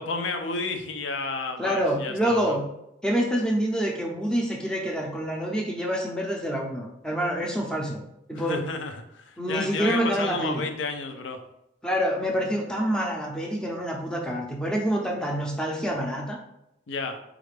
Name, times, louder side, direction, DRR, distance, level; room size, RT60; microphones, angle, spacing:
voice 1, 0.0-2.6 8.3-11.4 16.9-17.2, left 3 dB, 75° left, 6 dB, 0.5 m, -31 dB
voice 2, 1.6-2.7 3.0-8.0 8.3-8.7 9.4-10.6 11.8-16.4, equal, 5° left, -1 dB, 0.5 m, -27 dB
4.3 x 2.4 x 3.3 m, 0.82 s
head